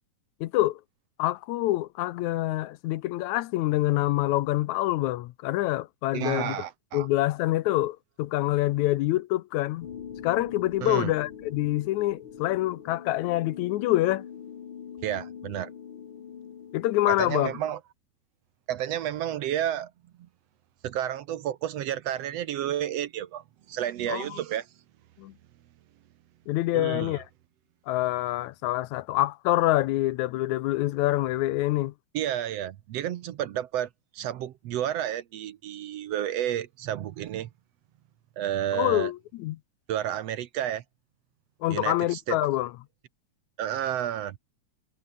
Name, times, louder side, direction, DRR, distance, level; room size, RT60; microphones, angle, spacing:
voice 1, 0.4-0.8 1.2-6.6 6.9-9.9 10.2-14.2 16.7-17.5 24.1-24.4 25.2-25.3 26.5-27.3 27.9-31.9 38.7-39.6 41.6-42.7, left 16 dB, 80° left, 2.0 m, -26 dB
voice 2, 6.1-7.1 10.8-11.1 15.0-15.7 17.1-17.8 18.7-19.9 20.8-24.7 26.7-27.1 32.1-37.5 38.4-39.1 39.9-40.8 41.7-42.4 43.6-44.4, right 11 dB, 70° right, 1.9 m, -31 dB
sound 1, 9.8-17.7, left 8 dB, 50° left, 2.2 m, -43 dB
omnidirectional pair, 3.4 m